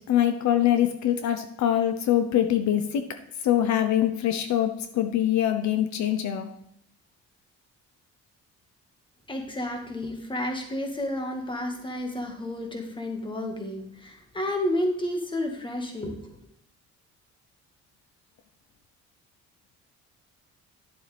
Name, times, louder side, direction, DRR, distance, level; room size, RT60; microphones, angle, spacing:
voice 1, 0.1-3.1 3.4-6.5, left 11 dB, 70° left, 8 dB, 0.9 m, -24 dB
voice 2, 9.3-16.3, left 1 dB, 15° left, 3 dB, 1.7 m, -31 dB
10.5 x 7.4 x 3.4 m, 0.73 s
cardioid pair, 125°, 29 cm